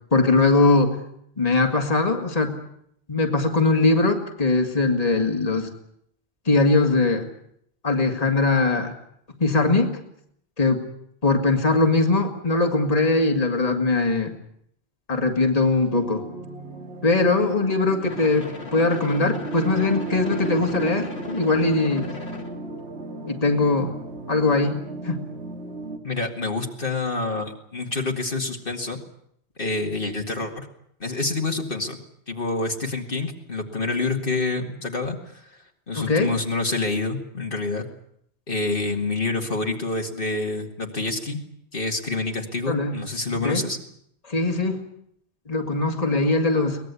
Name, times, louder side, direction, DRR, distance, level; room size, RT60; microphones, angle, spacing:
voice 1, 0.1-1.0 1.4-2.6 3.1-5.7 6.5-7.3 7.8-8.9 9.4-9.9 10.6-10.8 11.2-14.3 15.1-16.2 17.0-22.1 23.3-23.9 24.3-24.8 25.0-25.2 35.9-36.3 42.7-43.0 43.4-43.6 44.3-44.8 45.5-46.8, left 3 dB, 35° left, 4 dB, 2.2 m, -21 dB
sound 1, 15.9-26.0, right 2 dB, 85° right, 2.7 m, -35 dB
sound 2, 18.0-22.5, left 4 dB, 75° left, 2.8 m, -38 dB
voice 2, 26.0-29.0 29.6-30.7 31.0-32.0 32.3-35.6 35.9-37.9 38.5-41.4 41.7-43.8, left 3 dB, 55° left, 2 dB, 2.3 m, -27 dB
23.5 x 19.5 x 8.3 m, 0.70 s
omnidirectional pair, 1.1 m